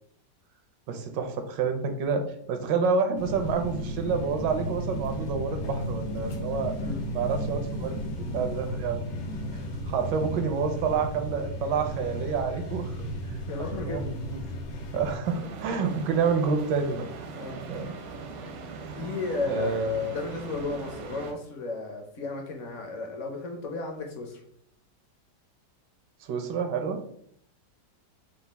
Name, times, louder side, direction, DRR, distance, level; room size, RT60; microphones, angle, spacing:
voice 1, 0.9-6.7 7.1-9.0 9.9-13.0 13.2-13.4 13.7-14.4 14.9-17.0 17.7-17.9 18.9-19.1 19.5-20.2 26.2-27.0, right 5 dB, 85° right, 6 dB, 1.3 m, -28 dB
sound 1, 3.2-15.2, equal, 80° left, 1.4 m, -34 dB
voice 2, 13.5-14.0 17.4-17.6 19.0-24.4, left 3 dB, 60° left, 2 dB, 0.9 m, -34 dB
sound 2, 15.2-21.3, right 3 dB, 65° right, 0.7 m, -40 dB
5.1 x 2.4 x 3.3 m, 0.70 s
omnidirectional pair, 1.9 m